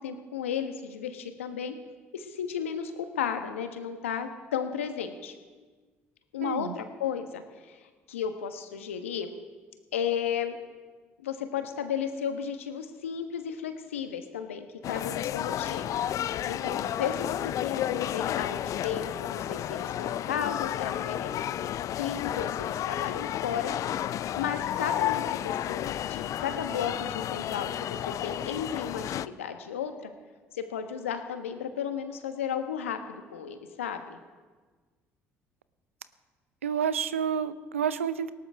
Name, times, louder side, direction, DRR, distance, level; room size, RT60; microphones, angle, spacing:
voice 1, 0.0-1.7 2.1-5.3 6.3-9.3 9.9-10.6 11.2-15.9 16.5-23.7 24.4-30.1 30.5-34.2, left 8 dB, 85° left, 8 dB, 1.2 m, -34 dB
voice 2, 6.4-6.8 36.6-38.3, right 8 dB, 90° right, 15 dB, 0.6 m, -29 dB
sound 1, 14.8-29.3, left 11 dB, 55° left, 0.5 m, -32 dB
19.0 x 18.5 x 3.5 m, 1.4 s
hypercardioid pair, 55°, 7 cm